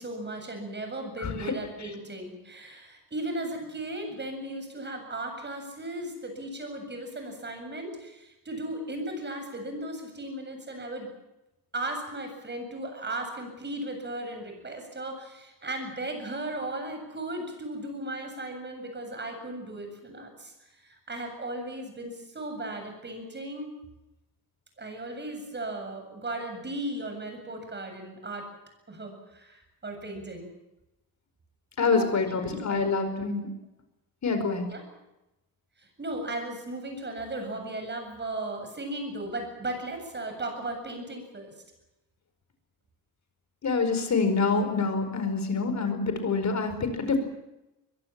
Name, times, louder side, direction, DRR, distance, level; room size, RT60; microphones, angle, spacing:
voice 1, 0.0-11.1 11.7-23.7 24.8-28.5 28.9-30.5 31.9-32.1 32.5-32.9 34.7-34.8 35.8-41.5, right 1 dB, 30° right, 5 dB, 7.8 m, -36 dB
voice 2, 31.8-33.5 34.2-34.7 43.6-47.2, left 4 dB, 45° left, 8 dB, 4.8 m, -26 dB
23.0 x 22.5 x 7.5 m, 0.96 s
wide cardioid pair, 140°, 37 cm